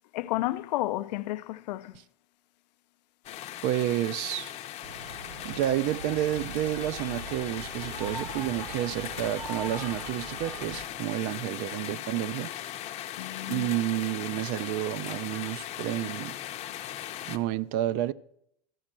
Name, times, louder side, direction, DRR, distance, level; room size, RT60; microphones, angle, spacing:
voice 1, 0.1-2.0 13.2-13.7, left 16 dB, 80° left, 0.5 m, -31 dB
sound 1, 3.2-17.4, left 12 dB, 30° left, 0.6 m, -39 dB
voice 2, 3.6-4.5 5.4-12.5 13.5-16.4 17.3-18.1, right 13 dB, 45° right, 0.4 m, -30 dB
sound 2, 4.8-10.9, right 2 dB, 65° right, 2.4 m, -41 dB
12.5 x 4.4 x 7.3 m
supercardioid pair, 145°, 21 cm